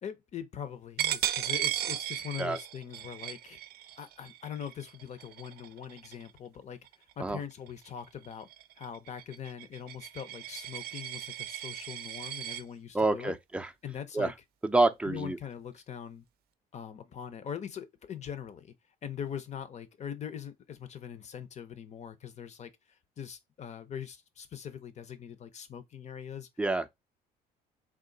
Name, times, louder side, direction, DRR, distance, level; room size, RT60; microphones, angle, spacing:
voice 1, 0.0-3.6 4.0-6.8 7.2-8.5 8.8-13.4 13.8-14.3 15.0-16.2 16.7-18.7 19.0-22.7 23.2-26.5, left 8 dB, 40° left, 0.7 m, -42 dB
Coin (dropping), 1.0-6.4 6.9-7.1 7.5-12.6, right 12 dB, 65° right, 0.5 m, -36 dB
voice 2, 12.9-13.7 14.1-14.3 14.6-15.4 26.6-26.9, right 2 dB, 5° right, 0.5 m, -27 dB
3.7 x 2.5 x 3.8 m
cardioid pair, 110°, 17 cm